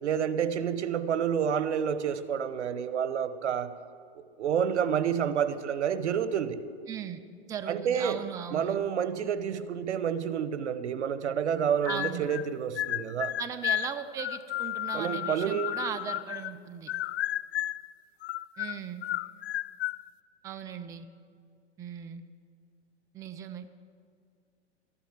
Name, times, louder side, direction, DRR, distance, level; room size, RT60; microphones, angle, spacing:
voice 1, 0.0-3.7 4.1-6.6 7.7-8.2 8.5-13.3 14.9-15.8, right 8 dB, 90° right, 12 dB, 1.0 m, -29 dB
voice 2, 6.9-7.2 7.5-8.8 11.8-12.3 13.4-16.9 18.6-19.0 20.4-21.1 21.8-22.2 23.1-23.7, right 8 dB, 10° right, 9 dB, 0.4 m, -38 dB
sound 1, 11.8-12.5 12.8-16.6 16.9-17.9 18.2-20.0, left 14 dB, 70° left, 0.5 m, -33 dB
13.5 x 11.0 x 7.4 m, 2.2 s
hypercardioid pair, 125°, 34 cm